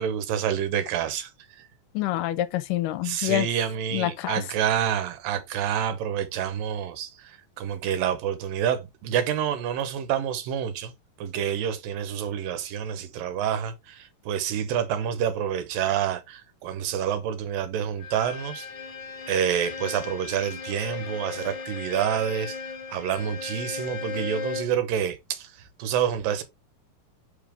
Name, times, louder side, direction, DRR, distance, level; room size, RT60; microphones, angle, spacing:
voice 1, 0.0-1.7 3.0-10.9 11.2-18.7 19.3-26.4, right 9 dB, 90° right, 2.7 m, -28 dB
voice 2, 2.0-3.5 3.9-4.4, left 14 dB, 80° left, 2.1 m, -27 dB
Bowed string instrument, 18.0-24.8, left 6 dB, 50° left, 1.5 m, -36 dB
5.5 x 5.1 x 3.4 m
omnidirectional pair, 3.9 m